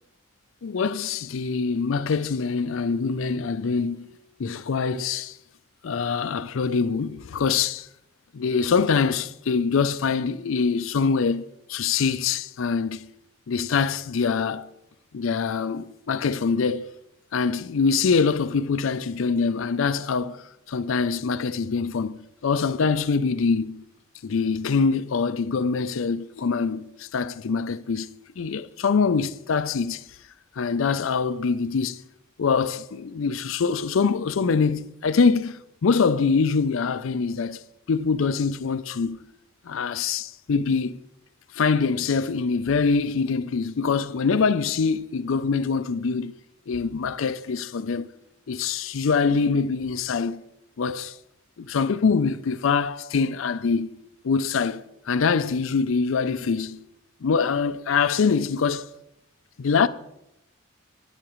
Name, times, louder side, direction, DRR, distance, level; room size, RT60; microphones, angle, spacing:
voice 1, 0.6-4.1 4.4-5.4 5.8-7.9 8.3-13.1 13.5-14.7 15.1-16.9 17.3-23.8 24.2-28.1 28.4-30.0 30.6-32.0 32.4-37.6 37.9-39.2 39.6-41.0 41.5-46.3 46.7-48.1 48.5-50.4 50.8-51.2 51.6-53.9 54.2-56.8 57.2-58.9 59.6-59.9, left 5 dB, 75° left, 0.5 m, -24 dB
13.5 x 9.7 x 3.1 m
head